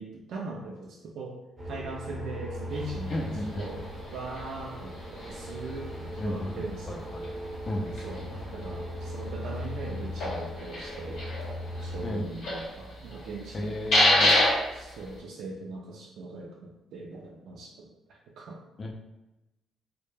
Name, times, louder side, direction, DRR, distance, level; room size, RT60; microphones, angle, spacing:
voice 1, 0.0-1.4 1.7-3.3 3.6-3.8 4.1-7.0 8.0-8.2 8.5-11.3 11.8-13.8 14.7-17.9 18.4-18.6, right 3 dB, 70° right, -1 dB, 0.3 m, -40 dB
sound 1, 1.6-12.1, left 1 dB, 20° right, 0.5 m, -39 dB
sound 2, 2.7-15.2, left 1 dB, 80° left, 0.8 m, -31 dB
voice 2, 3.1-3.9 6.2-7.3 7.7-7.9 12.0-12.3 13.5-14.3 18.8-18.9, left 1 dB, 30° left, 1 dB, 0.4 m, -34 dB
2.1 x 2.1 x 3.0 m, 0.96 s
cardioid pair, 145°, 0 cm